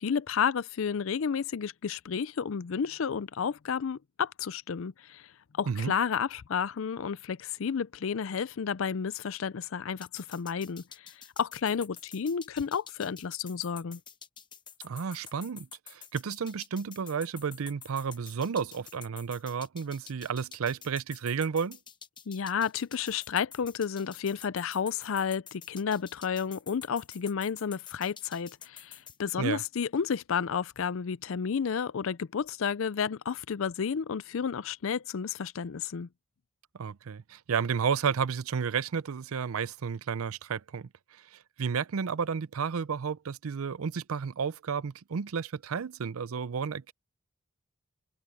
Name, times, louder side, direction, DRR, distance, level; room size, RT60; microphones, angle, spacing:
voice 1, 0.0-5.3 5.5-14.0 22.3-36.1, left 6 dB, 65° left, 0.5 m, -31 dB
sound 1, 10.0-29.2, left 7 dB, 20° left, 1.0 m, -48 dB
voice 2, 14.8-21.8 29.4-29.6 36.8-40.9 41.3-46.9, right 6 dB, 85° right, 0.5 m, -32 dB
head